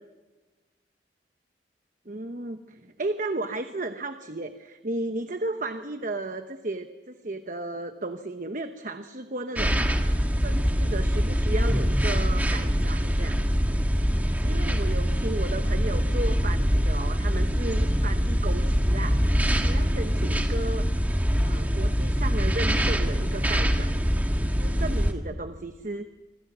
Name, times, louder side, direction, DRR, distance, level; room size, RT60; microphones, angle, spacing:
voice 1, 2.1-9.8 10.4-13.4 14.4-19.2 19.5-20.9 21.4-23.9 24.5-26.1, right 2 dB, 45° right, 7 dB, 1.0 m, -34 dB
sound 1, 9.6-25.1, equal, 10° right, 1.9 m, -24 dB
27.5 x 25.5 x 6.2 m, 1.3 s
head